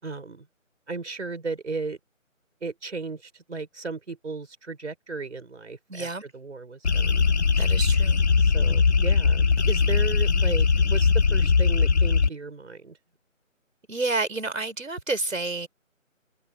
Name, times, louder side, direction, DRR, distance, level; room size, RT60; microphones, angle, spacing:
voice 1, 0.0-0.5 0.9-2.0 2.6-6.1 6.3-7.2 8.4-13.0, right 4 dB, 55° right, 5.2 m, -35 dB
voice 2, 5.9-6.2 7.6-8.2 13.9-15.7, right 3 dB, 75° right, 5.5 m, -29 dB
sound 1, 6.8-12.3, left 5 dB, 55° left, 0.9 m, -20 dB
figure-of-eight pair, 170°, 40 cm